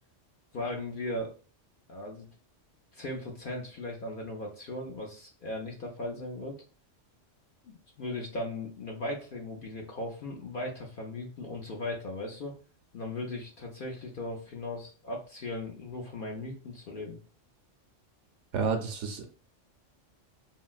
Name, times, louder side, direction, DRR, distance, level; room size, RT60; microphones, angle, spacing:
voice 1, 0.5-1.3 1.9-2.3 2.9-6.6 7.6-12.5 12.9-17.2, left 1 dB, 55° left, 0 dB, 0.6 m, -37 dB
voice 2, 18.5-19.3, right 5 dB, 75° right, 5 dB, 0.9 m, -30 dB
3.8 x 2.0 x 2.3 m, 0.37 s
omnidirectional pair, 1.3 m